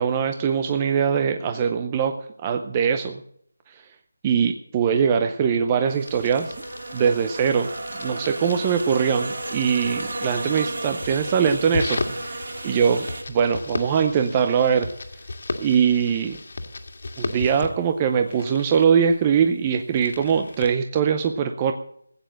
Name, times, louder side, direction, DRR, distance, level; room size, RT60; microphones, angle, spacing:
voice 1, 0.0-2.1 2.4-3.2 3.7-3.8 4.2-6.5 6.9-7.7 8.0-14.9 15.6-16.4 17.2-21.7, right 7 dB, 15° right, 6 dB, 0.6 m, -22 dB
sound 1, 5.9-13.2, right 2 dB, 60° right, 3.1 m, -33 dB
sound 2, 6.1-20.7, left 2 dB, 55° left, 1.9 m, -36 dB
16.0 x 9.3 x 7.6 m, 0.67 s
figure-of-eight pair, 175°, 0 cm